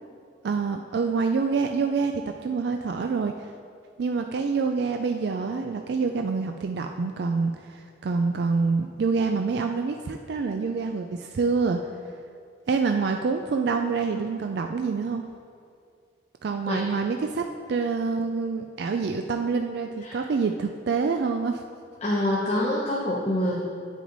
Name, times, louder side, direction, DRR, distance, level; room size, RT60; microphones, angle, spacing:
voice 1, 0.4-2.1 2.4-3.3 4.0-11.8 12.7-15.2 16.4-21.6 22.6-22.7, right 4 dB, 60° right, 5 dB, 0.4 m, -26 dB
voice 2, 22.0-23.6, left 1 dB, 35° left, -4 dB, 0.9 m, -26 dB
9.4 x 6.1 x 4.0 m, 2.3 s
head